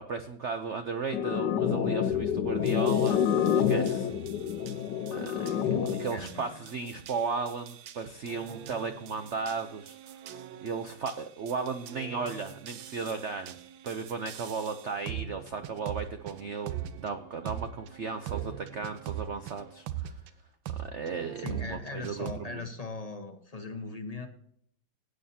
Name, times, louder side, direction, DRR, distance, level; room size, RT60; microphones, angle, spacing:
voice 1, 0.0-3.2 3.5-4.1 5.1-10.2 10.6-13.6 13.8-16.7 17.0-20.2 20.8-22.6, right 5 dB, 65° right, 7 dB, 0.7 m, -35 dB
sound 1, 1.1-6.1, left 8 dB, 70° left, 1.2 m, -27 dB
sound 2, 2.6-20.3 20.7-22.3, right 10 dB, 85° right, 1.6 m, -42 dB
voice 2, 5.9-6.6 6.9-7.0 21.4-24.3, left 3 dB, 30° left, 5 dB, 0.8 m, -39 dB
18.0 x 8.9 x 2.8 m, 0.65 s
omnidirectional pair, 2.1 m